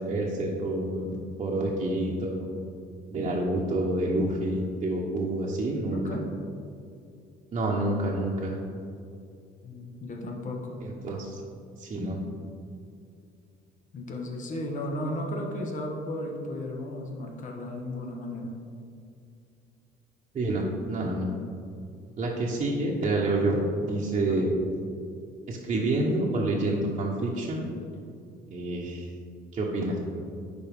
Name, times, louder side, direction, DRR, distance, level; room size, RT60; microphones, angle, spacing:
voice 1, 0.0-2.5 3.1-6.2 7.5-8.6 10.8-11.4 11.8-12.2 20.3-21.3 22.2-24.5 25.5-27.7 28.5-29.1 29.5-30.0, right 2 dB, 35° right, -5 dB, 1.0 m, -28 dB
voice 2, 5.9-6.2 9.6-10.8 13.9-18.6 24.2-24.5, left 1 dB, 50° left, 1 dB, 1.3 m, -35 dB
10.5 x 4.3 x 3.6 m, 2.4 s
cardioid pair, 110°, 17 cm